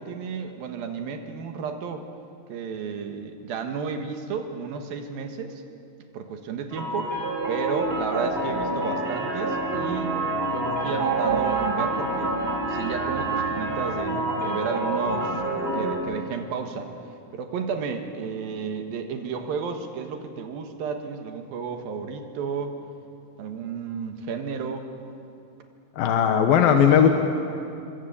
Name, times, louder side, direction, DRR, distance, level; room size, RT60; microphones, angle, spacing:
voice 1, 0.0-2.0 2.5-5.6 6.1-7.2 7.5-10.2 10.5-12.3 12.7-15.4 15.7-16.9 17.3-22.8 23.4-24.9, right 5 dB, 90° right, 5 dB, 3.4 m, -32 dB
sound 1, 6.7-16.0, right 2 dB, 15° right, 3.2 m, -27 dB
voice 2, 26.0-27.1, left 8 dB, 85° left, 5 dB, 3.2 m, -17 dB
27.5 x 23.5 x 8.6 m, 2.7 s
omnidirectional pair, 4.0 m